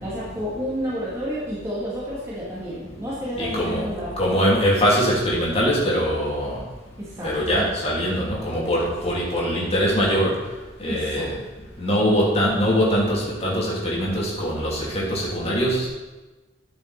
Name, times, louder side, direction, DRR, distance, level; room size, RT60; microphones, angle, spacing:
voice 1, 0.0-4.5 7.0-7.7 10.8-11.3, equal, 15° right, -8 dB, 2.3 m, -30 dB
voice 2, 3.4-3.8 4.2-6.6 7.2-10.3 10.8-11.3 11.8-15.9, equal, 35° left, -5 dB, 3.0 m, -22 dB
12.5 x 6.6 x 4.3 m, 1.2 s
head